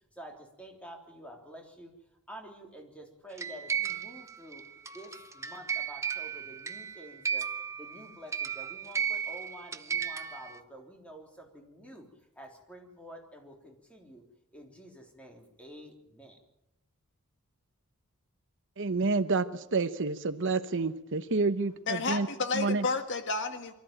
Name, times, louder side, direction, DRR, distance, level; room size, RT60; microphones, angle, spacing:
voice 1, 0.1-1.9 2.3-4.6 4.9-7.5 7.8-12.1 12.4-14.2 14.5-16.4, equal, 5° left, 1 dB, 3.5 m, -49 dB
sound 1, 3.4-10.6, right 7 dB, 15° right, 0.7 m, -35 dB
voice 2, 18.8-22.3 22.5-22.9, right 3 dB, 55° right, 12 dB, 0.9 m, -29 dB
voice 3, 21.9-23.7, left 4 dB, 55° left, 7 dB, 1.8 m, -31 dB
23.5 x 13.5 x 8.9 m, 0.89 s
head